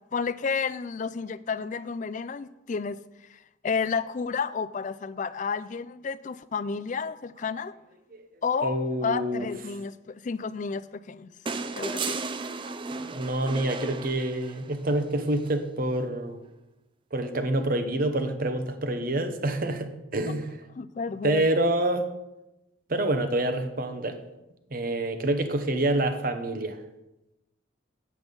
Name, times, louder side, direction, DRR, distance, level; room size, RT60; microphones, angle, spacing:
voice 1, 0.1-3.0 3.3-7.7 8.4-8.8 9.0-11.3 11.7-12.2 20.8-21.5, left 5 dB, 40° left, 0.3 m, -31 dB
voice 2, 8.6-9.5 13.0-16.4 17.1-20.6 21.2-22.1 22.9-24.2 24.7-26.8, right 1 dB, 45° right, 0.9 m, -27 dB
sound 1, 11.5-14.8 16.3-16.4, right 4 dB, 25° right, 0.4 m, -34 dB
8.4 x 8.0 x 5.3 m
head